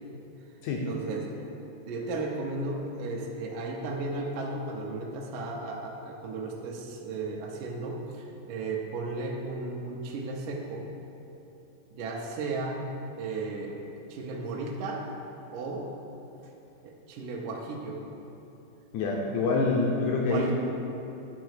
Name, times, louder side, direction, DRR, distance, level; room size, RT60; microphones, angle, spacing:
voice 1, 0.8-1.3 1.9-10.9 11.9-12.9 13.2-13.8 14.1-15.0 15.5-15.9 16.8-18.0 19.4-19.5 20.3-20.5, right 3 dB, 75° right, -2 dB, 2.0 m, -34 dB
voice 2, 18.9-20.5, left 3 dB, 90° left, -1 dB, 1.6 m, -26 dB
11.5 x 3.8 x 6.4 m, 2.9 s
omnidirectional pair, 4.3 m